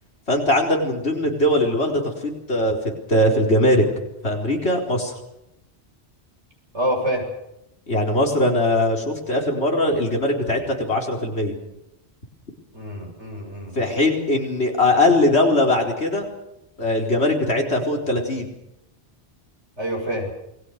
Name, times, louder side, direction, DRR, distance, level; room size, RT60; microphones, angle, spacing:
voice 1, 0.3-2.8 3.1-3.8 4.2-5.1 7.9-11.6 13.8-16.3 16.8-18.5, left 1 dB, 70° left, 1 dB, 4.6 m, -20 dB
voice 2, 6.7-7.3 12.7-13.9 19.8-20.3, equal, 85° right, 2 dB, 7.0 m, -27 dB
28.5 x 21.0 x 6.6 m, 0.87 s
omnidirectional pair, 1.1 m